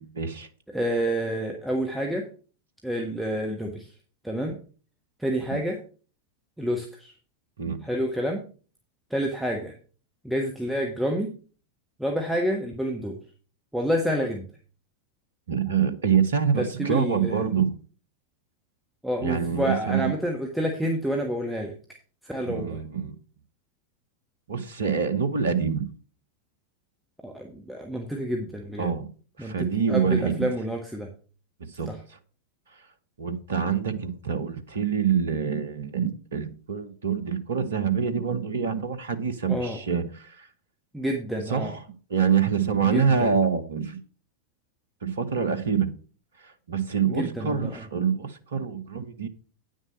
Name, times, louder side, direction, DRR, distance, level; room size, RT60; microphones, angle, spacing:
voice 1, 0.2-0.5 5.5-5.6 7.6-7.8 15.5-17.7 19.2-20.1 22.4-23.1 24.5-25.9 28.8-29.1 29.4-30.5 31.6-32.2 33.2-40.5 41.5-44.0 45.0-45.9 46.4-49.3, right 7 dB, 65° right, 0.9 m, -26 dB
voice 2, 0.7-2.3 2.8-3.9 4.2-4.6 5.2-5.8 6.6-7.1 7.8-8.4 9.1-9.7 10.2-11.3 12.0-13.2 13.7-14.4 16.6-17.5 19.0-21.7 22.2-22.8 27.2-28.9 29.4-31.1 31.9-32.0 39.5-39.8 40.9-41.7 42.8-43.3 47.1-47.8, equal, 5° right, 1.4 m, -28 dB
9.4 x 6.4 x 5.1 m
figure-of-eight pair, 90°, 0 cm